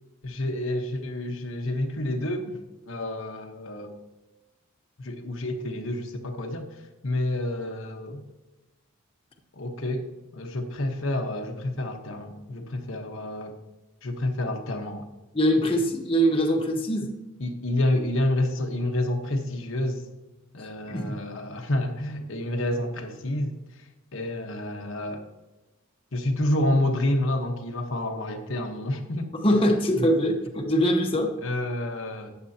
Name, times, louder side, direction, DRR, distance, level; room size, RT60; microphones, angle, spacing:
voice 1, 0.2-2.6 2.9-4.0 5.0-8.2 9.5-10.1 10.3-13.6 14.0-15.1 17.4-20.0 20.5-25.2 26.1-29.3 31.4-32.3, left 1 dB, 70° left, 3 dB, 1.2 m, -29 dB
voice 2, 15.3-17.1 20.9-21.1 29.3-31.3, equal, 25° left, 1 dB, 1.1 m, -23 dB
14.0 x 8.9 x 2.8 m, 1.1 s
head